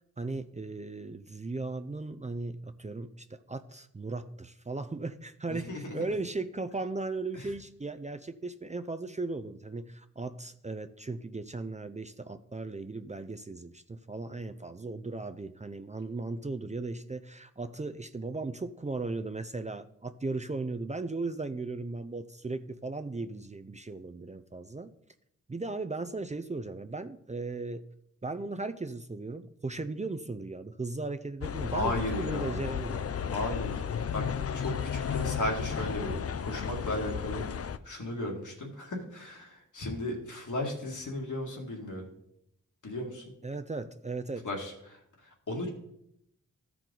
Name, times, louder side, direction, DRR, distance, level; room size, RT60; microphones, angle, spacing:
voice 1, 0.2-24.9 25.5-27.9 28.2-33.0 43.4-44.5, right 3 dB, 20° right, 9 dB, 0.5 m, -37 dB
voice 2, 5.5-6.0 7.3-7.5 31.7-32.6 33.3-33.8 34.1-34.2 34.5-42.1 42.8-43.3 44.4-45.7, left 1 dB, 70° left, 0 dB, 2.1 m, -35 dB
sound 1, 31.4-37.8, left 7 dB, 50° left, 0.5 m, -33 dB
13.5 x 4.6 x 3.9 m, 0.77 s
cardioid pair, 45°, 32 cm